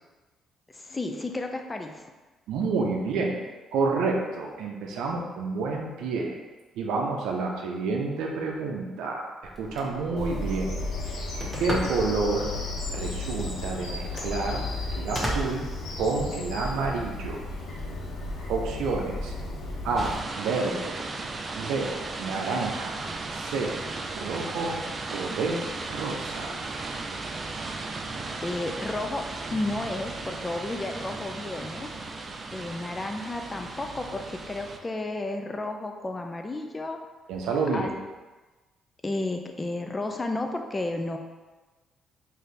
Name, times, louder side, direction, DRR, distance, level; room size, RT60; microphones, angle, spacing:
voice 1, 0.7-2.1 11.7-11.9 28.4-29.2 29.5-31.9 32.5-37.0 37.7-37.9 39.0-41.2, left 2 dB, 20° left, 4 dB, 0.4 m, -32 dB
voice 2, 2.5-3.4 3.7-6.4 6.8-9.2 9.6-10.7 11.2-11.3 11.6-12.5 12.9-14.6 14.9-15.7 16.0-17.4 18.5-19.3 19.8-21.1 21.5-23.0 23.3-23.7 24.1-24.8 25.1-26.6 37.3-37.9, right 3 dB, 85° right, 1 dB, 0.5 m, -29 dB
Telephone, 9.4-16.4, equal, ahead, 0.8 m, -38 dB
Bird vocalization bird call bird song, 10.2-20.2, left 2 dB, 70° left, 0.8 m, -34 dB
sound 1, 20.0-34.8, right 3 dB, 35° right, 0.4 m, -36 dB
3.9 x 2.7 x 3.3 m, 1.2 s
cardioid pair, 90°, 0 cm